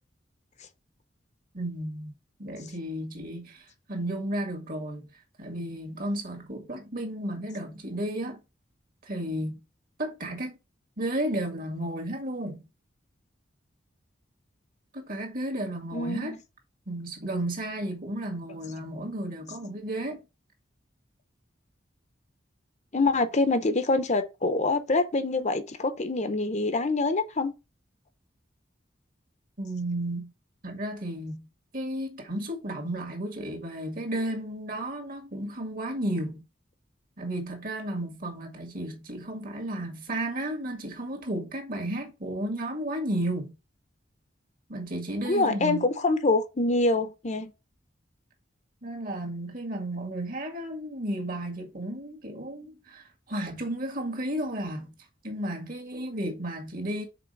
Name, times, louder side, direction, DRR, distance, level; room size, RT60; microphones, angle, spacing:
voice 1, 1.5-2.1 2.4-5.1 5.4-8.4 9.0-9.6 10.0-10.6 11.0-12.7 14.9-16.4 16.9-20.2 29.6-30.3 30.6-31.5 31.7-36.4 37.2-43.5 44.7-45.9 48.8-54.9 55.2-57.1, right 1 dB, 50° right, 1.9 m, -33 dB
voice 2, 15.9-16.4 22.9-27.5 45.3-47.5, left 3 dB, 40° left, 0.8 m, -25 dB
5.9 x 4.2 x 5.3 m
head